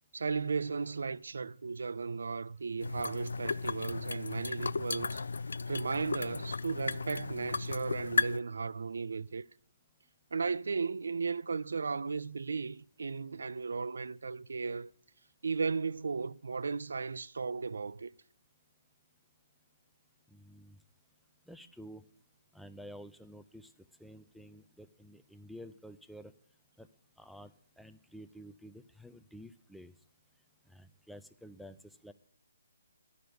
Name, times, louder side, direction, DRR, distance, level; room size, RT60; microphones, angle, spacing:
voice 1, 0.1-5.2 5.7-9.5 10.3-14.9 15.4-18.1, right 4 dB, 75° right, 0.4 m, -35 dB
sound 1, 2.8-8.4, left 4 dB, 80° left, 0.4 m, -35 dB
voice 2, 20.3-20.8 21.5-22.0 22.5-23.7 24.0-26.3 26.8-26.9 27.2-29.9 30.7-32.1, equal, ahead, 0.3 m, -51 dB
11.5 x 5.1 x 7.7 m
hypercardioid pair, 165°, 0 cm